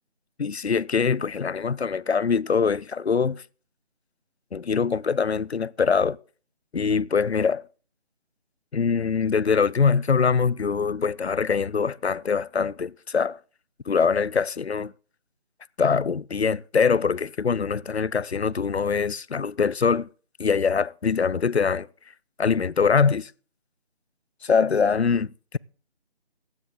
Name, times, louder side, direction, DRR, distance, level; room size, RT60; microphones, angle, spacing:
voice 1, 0.4-3.4 4.5-6.2 6.7-7.6 8.7-13.4 13.9-14.9 15.8-20.1 20.4-21.9 22.4-23.3 24.4-25.6, left 5 dB, 90° left, 0.6 m, -23 dB
15.5 x 10.5 x 3.7 m
figure-of-eight pair, 155°, 32 cm